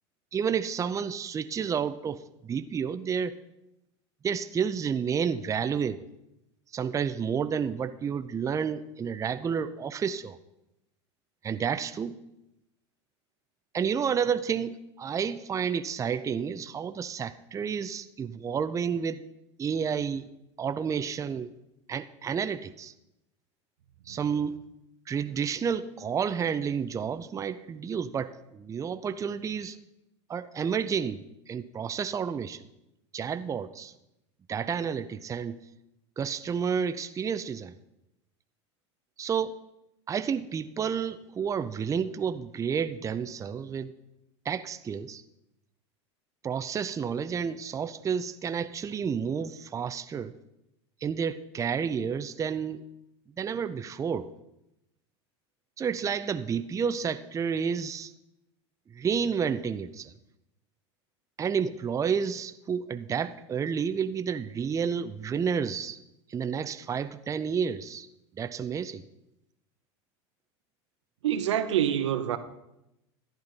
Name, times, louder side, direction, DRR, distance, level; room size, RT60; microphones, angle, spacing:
voice 1, 0.3-3.3 4.2-6.0 6.7-10.4 11.4-12.1 13.7-19.2 19.6-20.3 20.6-21.5 21.9-22.9 24.1-24.6 25.1-29.8 30.3-32.6 33.1-33.9 34.5-35.6 36.2-37.7 39.2-39.5 40.1-43.9 44.4-45.2 46.4-50.3 51.0-52.8 53.4-54.3 55.8-58.1 58.9-60.1 61.4-66.0 66.3-68.1 68.4-69.0, right 7 dB, 20° right, 0.5 m, -30 dB
voice 2, 71.2-72.4, right 10 dB, 85° right, 0.8 m, -26 dB
11.5 x 10.5 x 4.0 m
hypercardioid pair, 100°, 15 cm